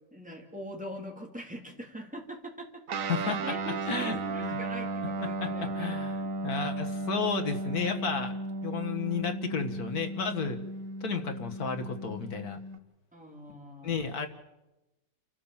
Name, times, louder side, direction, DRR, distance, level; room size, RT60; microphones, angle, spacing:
voice 1, 0.1-3.0 3.2-5.9 13.1-14.1, equal, 5° right, 0 dB, 3.0 m, -43 dB
Guitar, 2.9-12.8, right 2 dB, 65° right, 1.3 m, -35 dB
voice 2, 3.9-4.6 5.4-6.1 6.4-8.4 8.6-10.6 11.0-12.6 13.8-14.3, left 5 dB, 85° left, 5 dB, 2.0 m, -32 dB
29.0 x 12.5 x 7.3 m, 1.0 s
omnidirectional pair, 1.6 m